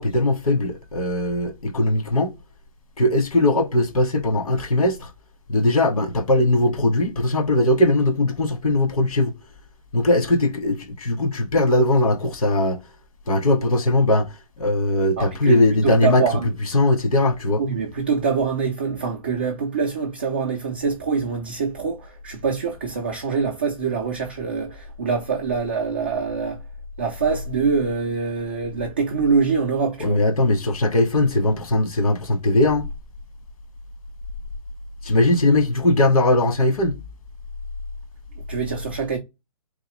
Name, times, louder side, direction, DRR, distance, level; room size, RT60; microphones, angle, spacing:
voice 1, 0.0-2.3 3.0-5.1 5.5-9.3 9.9-12.8 13.3-14.3 14.6-16.2 16.7-17.6 30.0-32.9 35.0-37.0, left 1 dB, 80° left, 1.6 m, -20 dB
voice 2, 15.2-15.6 15.8-16.5 17.6-26.6 27.0-30.2 38.5-39.2, right 5 dB, 15° right, 0.4 m, -24 dB
3.8 x 3.6 x 3.1 m
hypercardioid pair, 180°, 18 cm